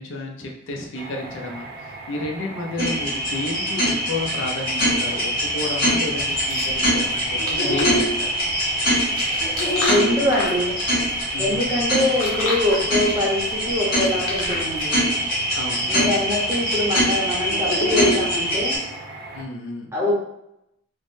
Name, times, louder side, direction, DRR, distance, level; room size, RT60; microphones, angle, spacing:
voice 1, 0.0-1.7 2.1-8.4 11.3-11.9 15.5-16.2 19.3-19.9, left 2 dB, 65° left, 0 dB, 0.5 m, -31 dB
sound 1, 0.9-19.4, right 2 dB, 45° right, 0.4 m, -38 dB
sound 2, 2.8-18.8, equal, 45° left, 1.2 m, -23 dB
sound 3, 6.2-15.0, left 2 dB, 90° left, 0.8 m, -32 dB
voice 2, 9.9-10.8 11.4-15.0 15.9-18.8 19.9-20.1, left 1 dB, 15° right, -5 dB, 0.7 m, -23 dB
3.3 x 2.0 x 2.5 m, 0.80 s
head